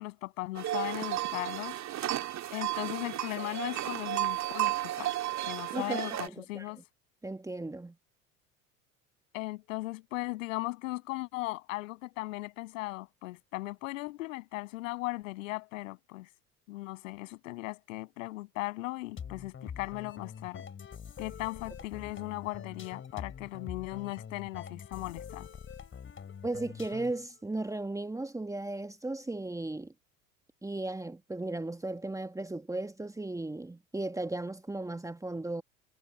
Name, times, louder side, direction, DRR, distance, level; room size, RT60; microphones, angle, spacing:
voice 1, 0.0-1.8 2.5-5.2 5.4-6.8 9.3-16.3 16.7-20.6 21.2-25.5, left 20 dB, 65° left, 7.8 m, -38 dB
sound 1, 0.6-6.3, right 14 dB, 40° right, 3.1 m, -33 dB
voice 2, 5.7-6.7 7.2-7.9 26.4-29.9 30.6-35.6, right 2 dB, 10° right, 1.7 m, -36 dB
sound 2, 19.2-27.3, left 7 dB, 30° left, 4.6 m, -45 dB
figure-of-eight pair, 70°, 42 cm